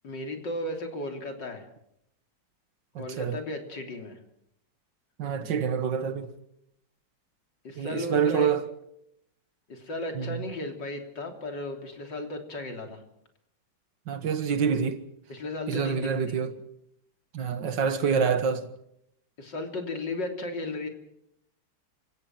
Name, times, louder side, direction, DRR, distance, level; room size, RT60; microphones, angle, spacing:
voice 1, 0.0-1.7 3.0-4.2 7.6-8.5 9.7-13.0 15.3-16.4 19.4-20.9, left 2 dB, 80° left, 4.0 m, -35 dB
voice 2, 3.0-3.4 5.2-6.3 7.8-8.6 10.2-10.4 14.1-15.0 15.7-16.6 17.3-18.7, right 6 dB, 85° right, 2.2 m, -27 dB
29.0 x 17.0 x 6.1 m
omnidirectional pair, 1.9 m